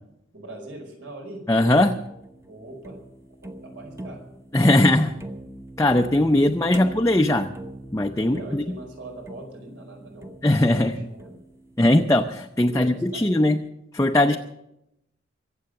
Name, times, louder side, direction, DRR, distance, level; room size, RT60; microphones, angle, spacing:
voice 1, 0.3-1.5 2.5-3.0 3.4-4.2 4.6-5.2 8.2-10.3 10.6-11.3 12.7-13.5 14.3-14.4, right 1 dB, 85° right, 2 dB, 4.8 m, -42 dB
voice 2, 1.5-2.0 4.5-5.1 5.8-7.5 7.9-8.8 10.4-10.9 11.8-13.6 13.9-14.4, left 1 dB, 15° left, 3 dB, 0.6 m, -19 dB
sound 1, 1.6-12.8, right 1 dB, 15° right, 1.0 m, -43 dB
23.5 x 8.0 x 6.5 m, 0.83 s
head